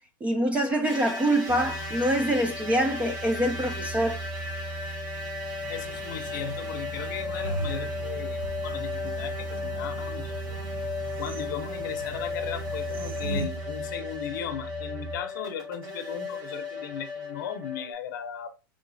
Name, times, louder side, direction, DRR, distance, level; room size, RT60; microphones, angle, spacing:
voice 1, 0.2-4.2, right 1 dB, 10° right, 0.3 m, -25 dB
sound 1, 0.8-17.9, left 4 dB, 45° right, 2.0 m, -36 dB
sound 2, 1.5-15.2, right 3 dB, 25° left, 0.7 m, -39 dB
sound 3, 5.6-13.5, right 2 dB, 85° right, 0.9 m, -40 dB
voice 2, 5.7-10.6 11.2-18.5, left 9 dB, 60° left, 0.7 m, -37 dB
3.8 x 3.7 x 2.5 m
supercardioid pair, 155°, 12 cm